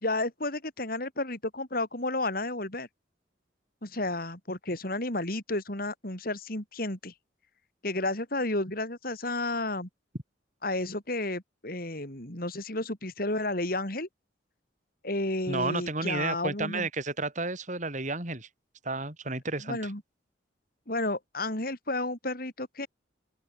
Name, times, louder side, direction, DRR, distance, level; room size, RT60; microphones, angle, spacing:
voice 1, 0.0-2.9 3.8-7.1 7.8-9.9 10.6-14.1 15.0-16.9 19.6-20.0 20.9-22.9, left 2 dB, 50° left, 4.1 m, -32 dB
voice 2, 15.5-18.5 18.8-19.9, right 3 dB, 40° right, 4.2 m, -32 dB
open air
head